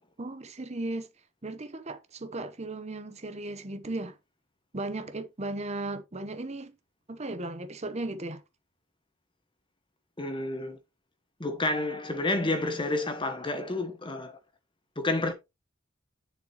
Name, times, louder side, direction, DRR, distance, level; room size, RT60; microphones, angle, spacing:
voice 1, 0.2-1.1 1.4-4.2 4.7-6.7 7.1-8.4, right 2 dB, 30° right, 0.8 m, -36 dB
voice 2, 10.2-10.8 11.4-14.3 15.0-15.3, left 2 dB, 25° left, 1.1 m, -29 dB
7.5 x 6.8 x 2.9 m
head